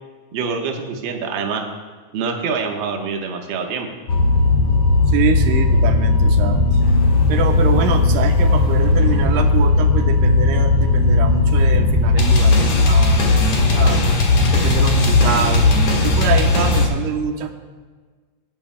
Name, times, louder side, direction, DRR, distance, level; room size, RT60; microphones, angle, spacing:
voice 1, 0.3-1.6 2.1-3.9, right 5 dB, 55° right, 2 dB, 1.3 m, -25 dB
sound 1, 4.1-16.9, left 3 dB, 50° left, 2.4 m, -16 dB
voice 2, 5.1-6.6 7.3-12.5 12.9-13.5 13.7-14.0 14.5-15.7 16.0-17.6, right 7 dB, 90° right, 5 dB, 2.5 m, -24 dB
26.5 x 9.8 x 2.2 m, 1.4 s
omnidirectional pair, 3.7 m